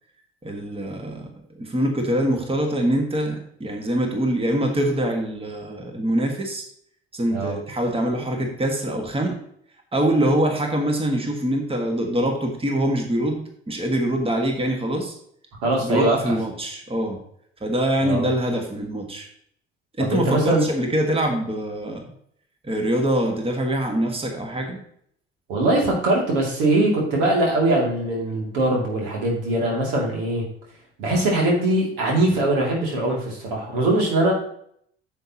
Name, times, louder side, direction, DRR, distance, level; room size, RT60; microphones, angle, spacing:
voice 1, 0.4-1.3 1.6-6.6 7.1-9.4 9.9-13.4 13.7-15.1 15.8-17.2 17.6-19.3 20.0-22.1 22.6-24.8, right 1 dB, 15° right, 3 dB, 1.7 m, -24 dB
voice 2, 15.6-16.3 18.0-18.3 20.0-20.6 25.5-30.5 31.0-34.3, right 1 dB, 70° right, -1 dB, 2.7 m, -21 dB
9.8 x 7.2 x 2.9 m, 0.66 s
figure-of-eight pair, 50°, 31 cm